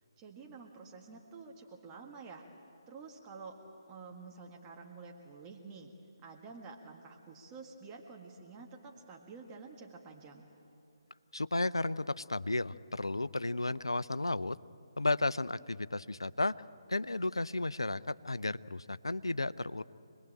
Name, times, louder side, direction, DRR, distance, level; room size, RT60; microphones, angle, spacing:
voice 1, 0.2-2.4 2.9-3.6 3.9-5.9 6.2-10.5, right 4 dB, 20° right, 0 dB, 1.8 m, -49 dB
voice 2, 11.3-14.6 15.0-16.5 16.9-19.8, left 2 dB, 80° left, 16 dB, 0.6 m, -33 dB
27.0 x 20.0 x 8.8 m, 2.7 s
figure-of-eight pair, 145°, 2 cm